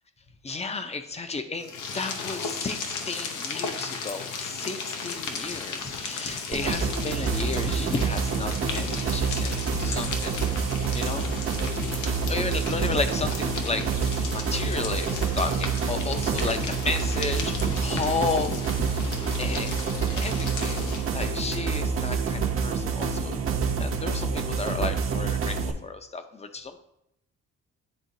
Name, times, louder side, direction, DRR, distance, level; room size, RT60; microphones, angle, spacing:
voice 1, 0.4-10.4 10.9-19.1 19.4-19.7 20.0-20.9 21.1-26.8, left 3 dB, 20° left, 9 dB, 0.6 m, -33 dB
sound 1, 1.6-21.2, left 5 dB, 85° left, 0.8 m, -36 dB
dramatic game music loop by kris klavenes, 6.5-25.7, right 5 dB, 45° right, 0.8 m, -27 dB
9.7 x 3.6 x 2.6 m, 0.81 s
cardioid pair, 90°, 30 cm